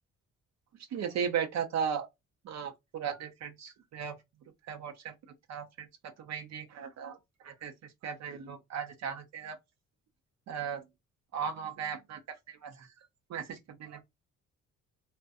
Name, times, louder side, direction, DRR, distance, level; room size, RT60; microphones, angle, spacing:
voice 1, 0.9-2.1 2.4-4.1 4.7-5.1 5.5-5.9 6.2-7.2 7.4-7.7 8.0-9.6 10.5-10.8 11.3-12.9 13.3-14.0, right 7 dB, 60° right, 0.6 m, -36 dB
2.5 x 2.1 x 2.3 m
cardioid pair, 90°, 30 cm